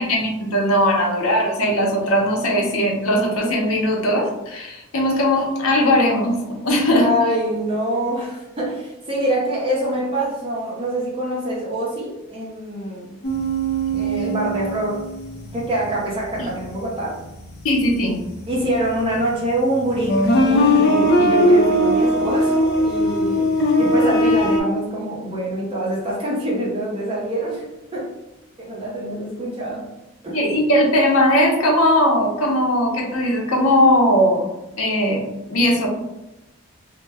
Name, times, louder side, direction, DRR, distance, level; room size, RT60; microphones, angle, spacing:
voice 1, 0.0-6.3 6.6-7.1 16.4-16.5 17.6-18.2 30.3-34.5 34.8-35.9, equal, 90° left, 0 dB, 0.6 m, -19 dB
voice 2, 6.9-13.2 13.9-15.0 15.5-17.2 18.5-23.5 23.8-27.7 27.9-28.1 28.6-29.9 30.2-30.4, right 1 dB, 25° right, -4 dB, 0.6 m, -25 dB
sound 1, 13.2-15.7 16.1-16.5 19.0-19.2 19.8-24.6, equal, 50° left, 0.5 m, -19 dB
2.1 x 2.1 x 3.3 m, 0.94 s
head